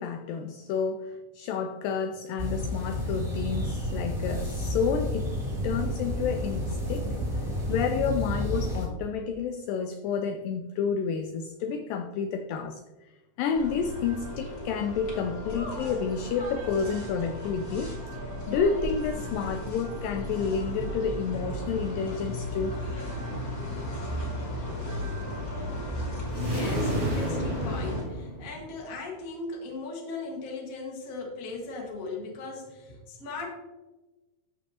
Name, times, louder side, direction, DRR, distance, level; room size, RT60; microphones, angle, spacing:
voice 1, 0.0-7.1 7.7-13.1 13.4-18.2 18.5-22.8, left 6 dB, 85° left, 1.9 m, -30 dB
sound 1, 2.4-8.9, equal, 10° right, 2.3 m, -31 dB
sound 2, 13.5-28.0, equal, 30° left, 2.1 m, -35 dB
voice 2, 26.3-33.5, left 3 dB, 50° left, 0.9 m, -38 dB
sound 3, 26.3-28.9, right 1 dB, 75° right, 0.6 m, -31 dB
14.0 x 5.4 x 2.8 m
omnidirectional pair, 4.5 m